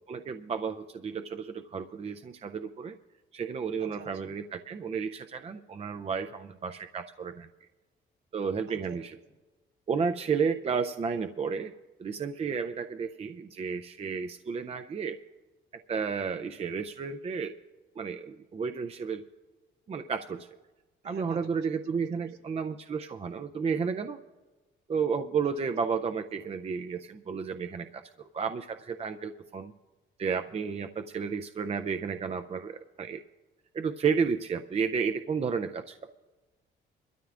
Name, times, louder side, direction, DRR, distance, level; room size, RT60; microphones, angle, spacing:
voice 1, 0.1-3.0 3.3-7.5 8.3-9.2 9.9-11.7 12.0-15.2 15.9-17.5 18.0-19.3 19.9-20.5 21.0-24.2 24.9-29.7 30.2-33.2 33.7-36.2, right 6 dB, 30° right, 7 dB, 0.4 m, -32 dB
voice 2, 3.8-4.3 8.7-9.0 21.0-22.3, right 3 dB, 60° right, 2 dB, 2.2 m, -50 dB
24.0 x 13.0 x 2.5 m, 1.2 s
cardioid pair, 90°, 20 cm